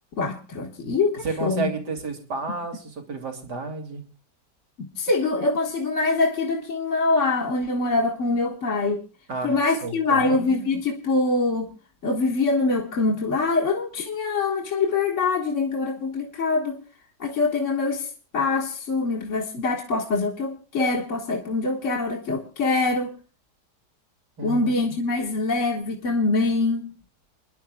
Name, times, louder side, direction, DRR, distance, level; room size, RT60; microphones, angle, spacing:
voice 1, 0.2-1.7 4.8-9.0 9.4-11.7 12.0-16.8 17.2-23.2 24.4-26.9, left 3 dB, 45° left, 2.0 m, -24 dB
voice 2, 1.2-4.0 9.3-10.8 24.4-25.0, right 3 dB, 80° right, 3.2 m, -32 dB
30.0 x 11.0 x 2.3 m
omnidirectional pair, 1.8 m